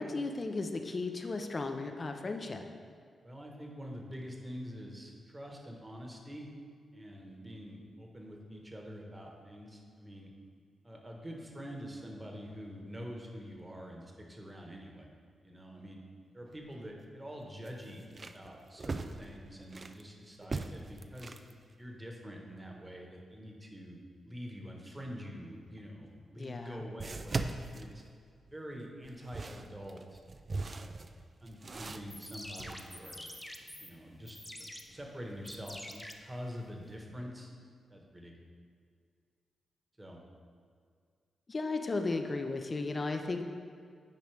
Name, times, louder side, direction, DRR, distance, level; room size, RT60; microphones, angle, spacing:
voice 1, 0.0-2.7 26.4-26.8 41.5-43.4, left 3 dB, 45° left, 5 dB, 0.7 m, -35 dB
voice 2, 3.2-6.5 6.9-10.3 10.8-15.1 15.4-16.0 16.3-21.4 21.8-24.0 24.2-28.0 28.5-30.2 30.5-30.9 31.4-33.2 33.8-37.5 37.9-38.3 40.0-40.2, equal, 25° right, 0 dB, 1.4 m, -46 dB
sound 1, 16.5-16.6 17.0-17.1 17.6-20.0 20.4-21.5 25.8-25.9 27.0-28.6 29.0-32.7, right 3 dB, 45° right, 0.4 m, -40 dB
sound 2, 31.9-36.9, left 1 dB, 10° left, 0.7 m, -48 dB
9.3 x 5.0 x 3.5 m, 2.1 s
supercardioid pair, 50°, 0 cm